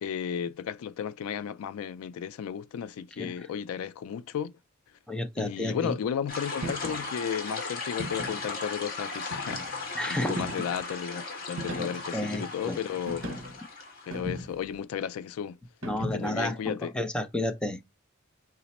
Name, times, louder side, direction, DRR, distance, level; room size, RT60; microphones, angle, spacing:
voice 1, 0.0-4.5 5.4-9.8 10.1-13.4 14.1-15.6 16.0-16.9, left 8 dB, 90° left, 0.3 m, -34 dB
voice 2, 5.1-5.9 9.9-10.5 11.8-12.8 15.8-17.8, left 1 dB, 5° left, 0.5 m, -31 dB
sound 1, 6.3-14.6, left 4 dB, 45° left, 1.6 m, -37 dB
sound 2, 6.6-7.1 8.0-8.5 9.3-9.9 10.4-10.8 11.6-12.1 13.1-13.6 14.1-14.7 15.8-16.4, right 1 dB, 75° right, 0.8 m, -38 dB
4.8 x 2.0 x 4.1 m
head